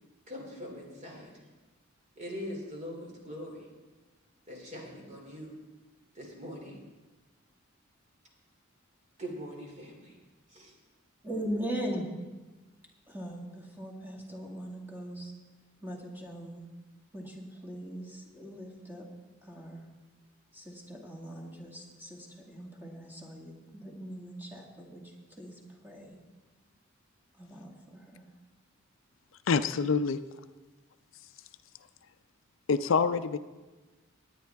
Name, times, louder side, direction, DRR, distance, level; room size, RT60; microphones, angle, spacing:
voice 1, 0.3-1.3 2.2-3.6 4.5-5.5 6.1-6.8 9.2-10.1 10.5-10.7, equal, 35° right, -1 dB, 2.9 m, -42 dB
voice 2, 11.2-12.0 13.1-15.3 15.8-16.7 17.1-19.1 19.4-19.8 20.5-25.0 25.4-25.5 25.8-26.2 27.4-28.3, equal, 10° right, -1 dB, 2.0 m, -40 dB
voice 3, 29.5-30.2 32.7-33.4, left 5 dB, 65° left, 11 dB, 0.5 m, -26 dB
19.0 x 9.5 x 3.5 m, 1.2 s
head